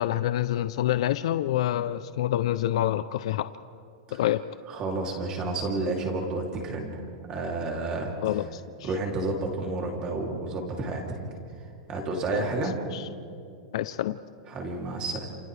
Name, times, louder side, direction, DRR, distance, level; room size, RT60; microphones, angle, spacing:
voice 1, 0.0-3.5 4.1-4.4 8.2-8.9 12.3-12.5 12.9-13.0 13.7-14.2, left 12 dB, 60° left, 12 dB, 0.5 m, -27 dB
voice 2, 4.7-8.1 8.8-11.2 11.9-12.7 14.5-15.3, right 2 dB, 20° right, 0 dB, 2.9 m, -30 dB
30.0 x 28.5 x 3.4 m, 2.4 s
supercardioid pair, 175°, 3 cm